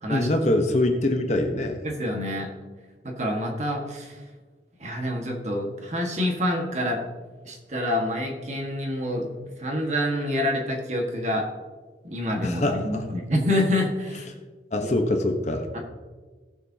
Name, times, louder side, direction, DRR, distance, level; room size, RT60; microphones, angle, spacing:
voice 1, 0.1-1.8 12.4-13.0 14.7-15.7, left 1 dB, 40° left, 4 dB, 1.0 m, -24 dB
voice 2, 1.8-2.5 3.0-4.2 4.8-7.0 7.4-9.3 9.6-11.5 12.0-14.2 14.8-14.9 15.7-15.8, left 1 dB, 40° right, 1 dB, 1.6 m, -27 dB
18.0 x 7.0 x 2.8 m, 1.4 s
head